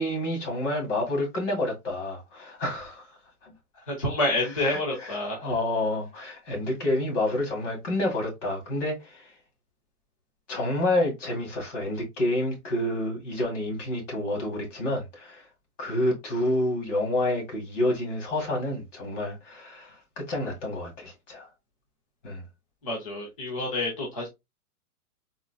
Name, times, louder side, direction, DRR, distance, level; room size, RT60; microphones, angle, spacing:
voice 1, 0.0-3.1 3.4-3.5 4.6-5.2 5.4-9.3 10.5-15.4 15.8-21.5 22.2-22.4, left 1 dB, 55° left, 2.0 m, -29 dB
voice 2, 3.9-5.5 22.8-24.3, left 2 dB, 25° left, 0.6 m, -28 dB
3.7 x 3.4 x 2.3 m
hypercardioid pair, 180°, 45 cm